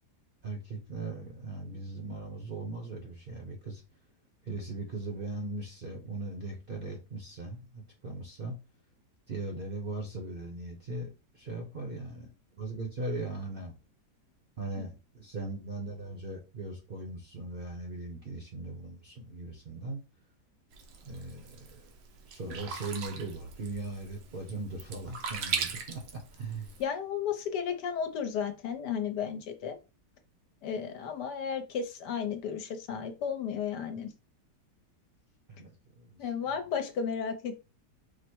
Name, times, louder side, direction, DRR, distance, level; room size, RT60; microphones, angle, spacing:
voice 1, 0.4-3.8 4.5-8.6 9.3-11.1 11.4-12.3 12.5-13.7 14.6-20.0 21.0-21.8 22.3-26.7 35.5-36.3, right 2 dB, 45° right, 0.7 m, -39 dB
Sink (filling or washing), 20.7-26.8, right 6 dB, 85° right, 1.5 m, -39 dB
voice 2, 26.8-29.8 30.6-34.1 36.2-37.6, left 7 dB, 75° left, 1.3 m, -33 dB
4.9 x 2.1 x 4.4 m
omnidirectional pair, 1.8 m